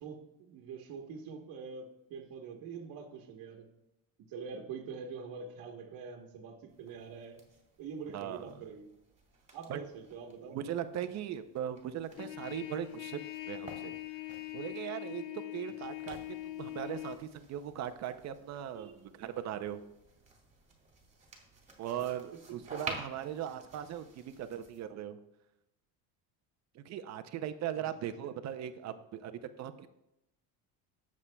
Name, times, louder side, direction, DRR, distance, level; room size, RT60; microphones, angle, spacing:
voice 1, 0.0-3.7 4.3-7.4 7.8-8.9 9.5-10.6 12.1-12.3 18.7-19.1 22.5-22.6 22.8-22.9 27.8-28.1, right 5 dB, 65° right, 0 dB, 1.2 m, -45 dB
sound 1, 6.7-14.8 15.8-24.9, right 3 dB, 20° right, 2.1 m, -51 dB
voice 2, 8.1-8.5 9.7-9.8 10.5-13.2 13.5-14.0 14.5-15.2 15.5-19.8 21.8-25.2 26.7-29.9, right 10 dB, 45° right, 10 dB, 0.6 m, -39 dB
Trumpet, 12.2-17.2, left 16 dB, 75° left, 0.8 m, -42 dB
19.0 x 7.3 x 2.2 m, 0.86 s
cardioid pair, 150°, 38 cm